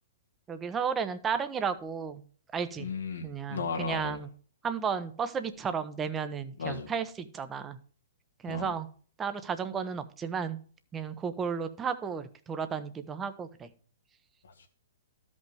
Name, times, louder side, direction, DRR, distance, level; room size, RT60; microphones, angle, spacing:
voice 1, 0.5-2.2 2.5-2.9 3.2-4.3 4.6-7.8 8.4-8.9 9.2-10.6 10.9-13.7, right 6 dB, 20° right, 10 dB, 0.9 m, -33 dB
voice 2, 2.8-4.2 6.6-6.9 8.5-8.7 14.4-14.7, left 5 dB, 80° left, 3 dB, 1.9 m, -35 dB
13.0 x 5.4 x 4.8 m, 0.44 s
hypercardioid pair, 125°, 0 cm